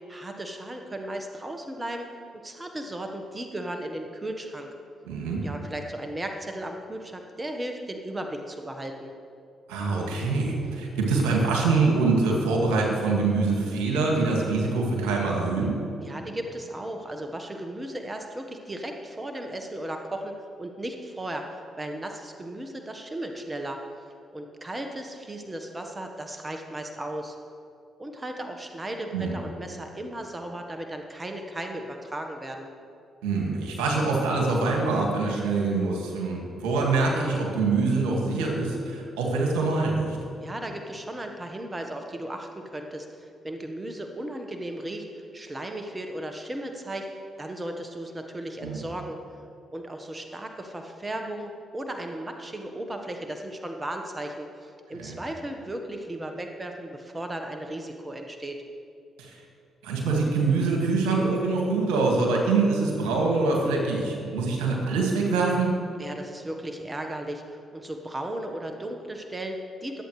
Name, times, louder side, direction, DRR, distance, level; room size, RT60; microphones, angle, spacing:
voice 1, 0.1-4.7 5.4-9.1 16.0-23.8 24.3-27.4 28.0-32.7 40.4-49.2 49.7-58.6 66.0-70.0, right 1 dB, 25° right, 4 dB, 1.2 m, -36 dB
voice 2, 5.1-5.4 9.7-15.8 29.1-29.3 33.2-40.2 48.6-48.8 55.0-55.2 59.2-59.4 59.8-65.7, right 3 dB, 80° right, -1 dB, 1.9 m, -24 dB
21.5 x 8.3 x 3.2 m, 2.4 s
hypercardioid pair, 45°, 0 cm